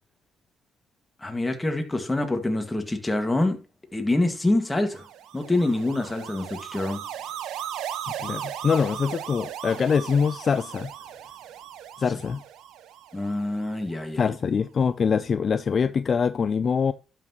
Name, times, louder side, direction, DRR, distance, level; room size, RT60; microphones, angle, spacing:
voice 1, 1.2-3.6 3.9-5.1 5.3-7.0 13.1-14.2, left 2 dB, 15° left, 1.9 m, -26 dB
sound 1, 4.7-14.0, right 10 dB, 85° right, 0.8 m, -37 dB
voice 2, 8.2-10.9 12.0-12.4 14.2-16.9, left 6 dB, 45° left, 0.4 m, -24 dB
12.0 x 5.9 x 3.0 m
cardioid pair, 90°, 0 cm